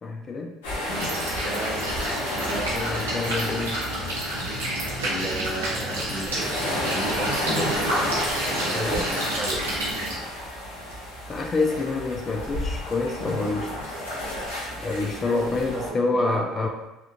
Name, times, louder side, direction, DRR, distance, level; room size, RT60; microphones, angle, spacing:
voice 1, 0.0-0.5 2.7-3.8 8.7-9.1 11.3-13.7 14.7-16.7, left 3 dB, 35° left, 2 dB, 0.4 m, -27 dB
sound 1, 0.6-15.9, left 1 dB, 80° left, 0.8 m, -31 dB
sound 2, 0.9-10.1, right 1 dB, 90° right, 0.7 m, -30 dB
voice 2, 1.4-1.9 2.3-2.7 5.0-6.6 6.9-8.1 8.4-9.7 15.3-16.7, right 2 dB, 30° right, -2 dB, 0.7 m, -34 dB
2.9 x 2.4 x 2.2 m, 0.98 s
hypercardioid pair, 65°, 0 cm